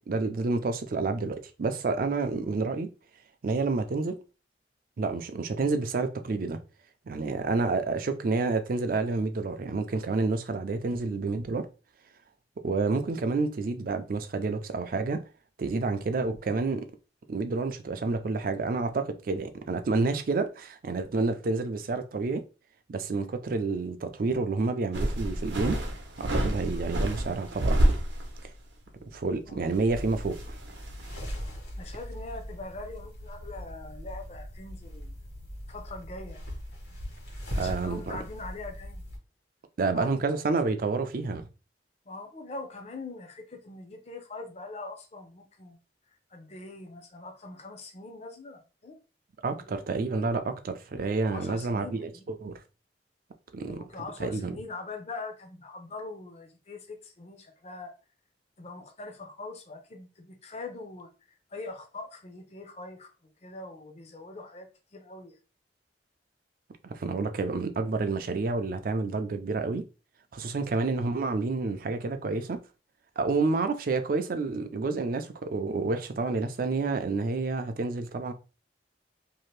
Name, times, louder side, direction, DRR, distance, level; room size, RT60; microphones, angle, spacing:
voice 1, 0.0-2.9 3.4-4.2 5.0-6.6 7.1-11.7 12.6-15.2 15.6-16.9 17.3-22.4 22.9-25.8 26.2-27.8 29.1-30.6 37.6-38.2 39.8-41.5 49.4-52.6 53.5-53.8 54.2-54.5 66.8-69.9 70.3-72.6 73.2-78.3, right 3 dB, 50° right, 0.4 m, -29 dB
sound 1, 24.9-28.6 28.9-29.0 29.6-31.2, right 1 dB, 85° right, 0.7 m, -28 dB
sound 2, 29.9-39.2, equal, 65° left, 1.3 m, -40 dB
voice 2, 31.8-35.1 35.7-36.5 37.5-39.0 39.9-40.3 42.1-45.8 46.1-49.0 49.7-49.8 51.3-52.3 53.6-57.9 58.6-63.1 63.4-65.4, left 3 dB, 35° left, 0.5 m, -42 dB
2.7 x 2.5 x 3.1 m
head